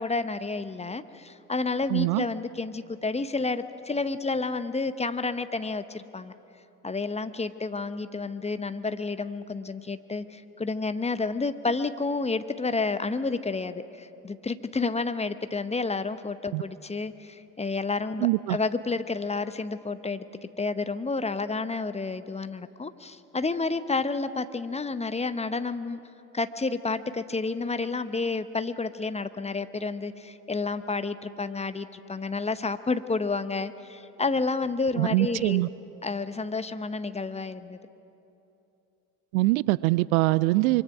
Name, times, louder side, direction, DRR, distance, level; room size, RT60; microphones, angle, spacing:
voice 1, 0.0-6.3 6.8-20.2 20.6-26.0 26.3-35.7 36.0-37.8, left 3 dB, 15° left, 12 dB, 0.8 m, -30 dB
voice 2, 1.9-2.3 16.5-16.6 18.2-18.6 35.0-35.7 39.3-40.8, right 20 dB, 65° right, 20 dB, 0.5 m, -23 dB
24.0 x 23.5 x 6.0 m, 2.9 s
figure-of-eight pair, 55°, 46 cm